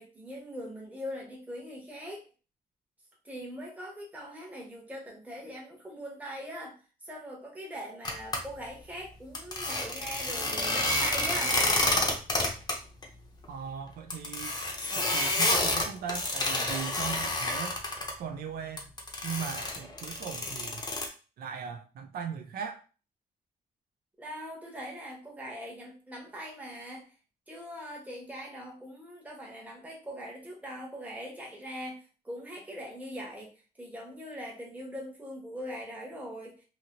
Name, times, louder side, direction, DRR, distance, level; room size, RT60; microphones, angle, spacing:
voice 1, 0.0-2.2 3.2-6.8 7.0-11.6 24.2-27.1 27.5-33.5 33.8-36.5, equal, 10° right, 0.9 m, -41 dB
sound 1, 8.0-8.4 9.3-12.7 13.0-13.1 13.4-13.5 14.1-18.1 18.8-21.1, left 2 dB, 25° left, 0.6 m, -29 dB
voice 2, 13.5-14.5 14.9-17.8 18.2-18.9 19.2-20.8 21.4-22.8, right 7 dB, 70° right, 0.4 m, -38 dB
2.8 x 2.7 x 2.8 m
wide cardioid pair, 150°, 16 cm